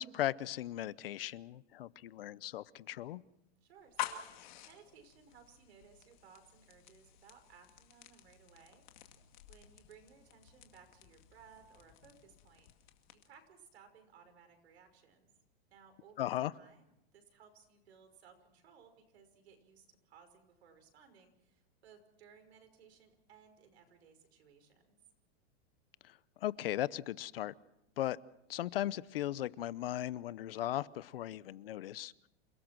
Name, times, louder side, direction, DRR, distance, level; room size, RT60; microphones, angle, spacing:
voice 1, 0.0-3.2 16.2-16.5 26.0-27.5 28.0-28.2 28.5-32.1, left 13 dB, 60° left, 19 dB, 0.8 m, -37 dB
voice 2, 3.6-8.9 9.5-12.7 13.1-15.3 15.7-16.9 17.1-25.0, right 6 dB, 75° right, 6 dB, 5.8 m, -61 dB
sound 1, 3.8-13.5, left 12 dB, 45° left, 2.2 m, -49 dB
28.5 x 18.0 x 6.1 m, 0.83 s
supercardioid pair, 180°, 32 cm